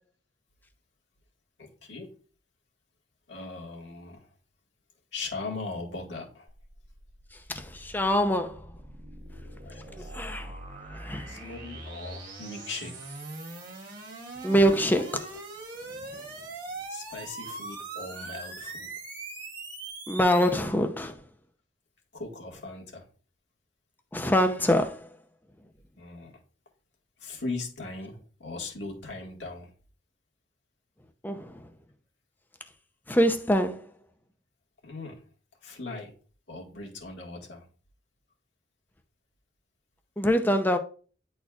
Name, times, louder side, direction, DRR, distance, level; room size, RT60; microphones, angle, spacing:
voice 1, 1.6-2.1 3.3-4.3 5.1-6.5 9.6-10.1 11.3-13.1 16.9-18.9 22.1-23.1 26.0-26.3 27.2-29.7 34.8-35.2 35.6-36.1 36.5-37.7, left 3 dB, 75° left, 1.8 m, -39 dB
sound 1, 6.5-20.6, right 2 dB, 50° right, 1.5 m, -41 dB
voice 2, 7.5-8.6 9.9-10.5 10.9-11.4 14.4-15.2 20.1-21.1 24.1-25.1 31.2-31.7 33.1-33.9 40.2-40.8, equal, 10° left, 0.6 m, -25 dB
10.0 x 4.2 x 2.4 m
head